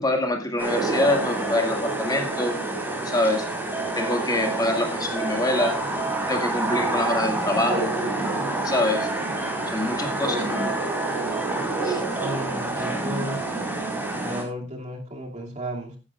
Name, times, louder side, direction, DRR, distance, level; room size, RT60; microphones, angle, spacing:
voice 1, 0.0-2.6 3.0-3.5 3.9-5.8 6.3-7.9 8.6-9.1 9.7-10.7 11.8-12.0, left 1 dB, 20° left, 2 dB, 2.0 m, -25 dB
sound 1, 0.6-14.4, right 2 dB, 10° right, 4.2 m, -27 dB
voice 2, 12.2-13.4 14.1-16.0, equal, 35° right, 0 dB, 2.5 m, -33 dB
15.5 x 10.5 x 2.4 m, 0.31 s
head